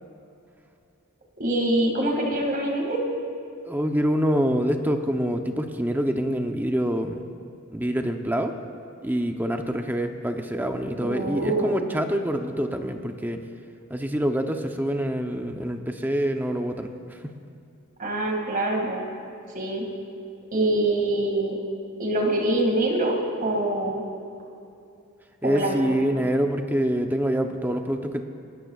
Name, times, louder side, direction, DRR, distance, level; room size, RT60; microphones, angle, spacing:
voice 1, 1.4-3.0 11.0-11.9 18.0-19.1 19.5-19.9 20.5-21.6 22.0-24.0 25.4-25.8, right 1 dB, 40° right, 1 dB, 2.2 m, -24 dB
voice 2, 3.7-7.2 7.7-8.5 9.0-13.4 13.9-17.3 25.4-28.2, equal, 10° right, 5 dB, 0.7 m, -26 dB
27.0 x 13.5 x 2.4 m, 2.6 s
head